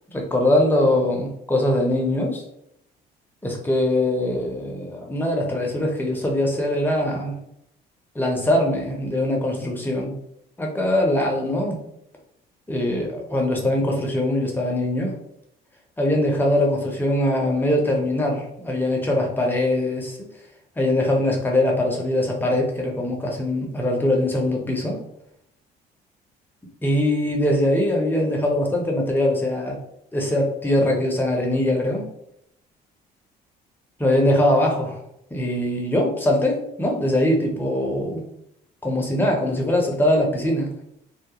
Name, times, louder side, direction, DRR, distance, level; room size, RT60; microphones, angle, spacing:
voice 1, 0.1-2.4 3.4-7.4 8.1-10.2 10.6-11.8 12.7-15.1 16.0-20.2 20.8-25.0 26.8-29.8 30.1-32.0 34.0-35.0 35.3-38.2 38.8-40.7, left 1 dB, 10° left, 0 dB, 0.6 m, -22 dB
2.3 x 2.0 x 2.8 m, 0.75 s
cardioid pair, 110°, 17 cm